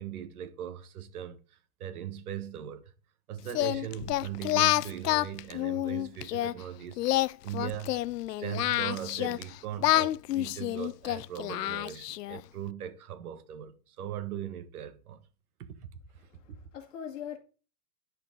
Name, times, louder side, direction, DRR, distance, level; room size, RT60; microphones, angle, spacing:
voice 1, 0.0-2.9 3.3-7.0 7.4-8.0 8.4-15.2 15.6-15.7, right 10 dB, 65° right, 1.6 m, -39 dB
Singing, 3.5-6.5 7.0-9.4 9.8-12.4, left 15 dB, 85° left, 0.6 m, -28 dB
voice 2, 16.2-17.4, left 9 dB, 50° left, 2.2 m, -42 dB
10.0 x 6.4 x 3.9 m
supercardioid pair, 170°, 47 cm